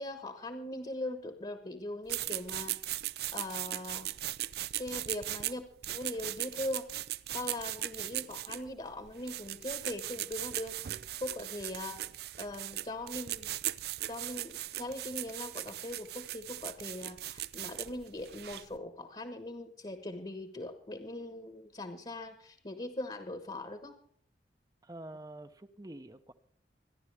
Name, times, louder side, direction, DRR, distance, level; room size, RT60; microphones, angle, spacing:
voice 1, 0.0-2.8 3.3-4.1 4.8-6.9 7.3-12.0 12.4-13.5 14.1-24.0, left 1 dB, 30° left, 8 dB, 1.2 m, -41 dB
sound 1, 2.1-18.8, right 14 dB, 65° right, 0.4 m, -39 dB
voice 2, 24.8-26.3, right 1 dB, 20° right, 10 dB, 0.7 m, -47 dB
25.5 x 11.0 x 3.4 m, 0.62 s
head